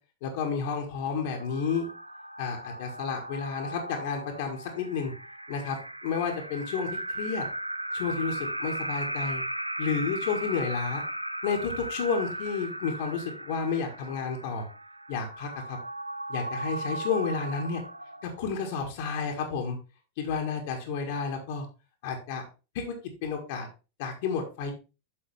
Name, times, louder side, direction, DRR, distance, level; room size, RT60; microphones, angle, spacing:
voice 1, 0.2-1.9 2.4-5.1 5.5-7.4 7.9-9.4 9.8-11.0 11.4-14.7 15.1-15.8 16.3-17.8 18.2-19.8 20.2-21.7 22.0-22.4 22.7-23.0 23.2-23.7 24.0-24.7, left 5 dB, 50° left, 2 dB, 1.8 m, -31 dB
sound 1, 1.2-18.6, right 1 dB, 85° right, 0.4 m, -37 dB
7.3 x 6.5 x 3.5 m, 0.31 s
figure-of-eight pair, 90°, 0 cm